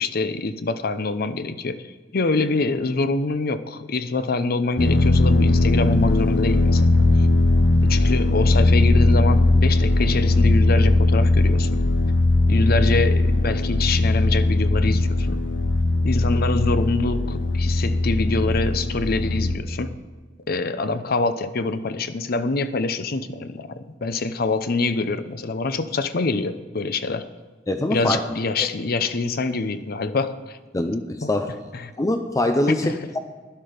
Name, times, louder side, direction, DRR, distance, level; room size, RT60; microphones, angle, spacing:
voice 1, 0.0-7.0 7.8-11.9 12.5-15.4 16.0-20.0 20.5-27.3 27.9-30.6 31.2-31.3 31.7-31.9 32.8-33.0, left 3 dB, 55° left, 11 dB, 0.7 m, -25 dB
sound 1, 4.8-19.6, left 2 dB, 80° left, 1.0 m, -19 dB
voice 2, 27.7-28.2 30.7-31.5 32.0-33.2, left 1 dB, 20° left, 6 dB, 0.5 m, -23 dB
12.0 x 10.5 x 5.1 m, 1.4 s
head